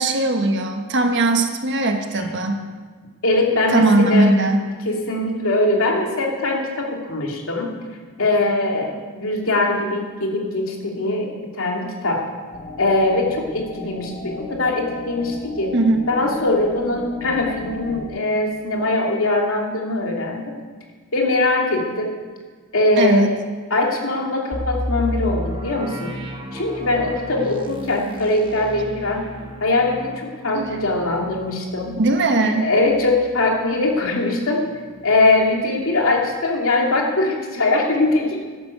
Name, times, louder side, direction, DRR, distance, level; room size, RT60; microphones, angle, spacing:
voice 1, 0.0-2.6 3.7-4.6 15.7-16.0 23.0-23.3 30.5-30.6 32.0-32.7, right 2 dB, 55° right, 5 dB, 1.4 m, -19 dB
voice 2, 3.2-4.3 4.9-7.7 8.2-12.3 12.8-15.7 16.1-20.5 21.1-22.1 22.7-23.3 23.7-26.2 26.5-29.3 29.6-32.0 32.5-34.6 35.0-38.4, left 2 dB, 70° left, 0 dB, 2.7 m, -21 dB
sound 1, 12.5-18.1, left 2 dB, 30° left, 1.4 m, -36 dB
sound 2, 24.5-34.2 34.6-34.7 35.2-35.4, equal, 25° right, 1.2 m, -33 dB
12.5 x 11.0 x 6.7 m, 1.5 s
head